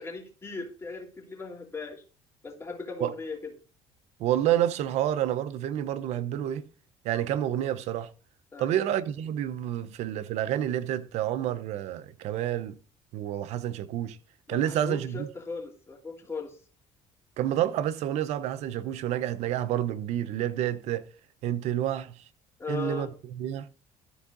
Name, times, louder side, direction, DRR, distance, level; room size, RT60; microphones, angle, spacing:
voice 1, 0.0-2.0 2.4-3.5 8.5-8.8 14.5-16.6 22.6-23.1, left 4 dB, 25° left, 3.1 m, -38 dB
voice 2, 4.2-6.7 7.0-8.1 8.6-12.8 13.1-14.2 14.5-15.3 17.4-21.0 21.4-22.1 22.7-23.7, right 11 dB, 75° right, 0.8 m, -29 dB
13.0 x 4.8 x 3.9 m
cardioid pair, 95°, 12 cm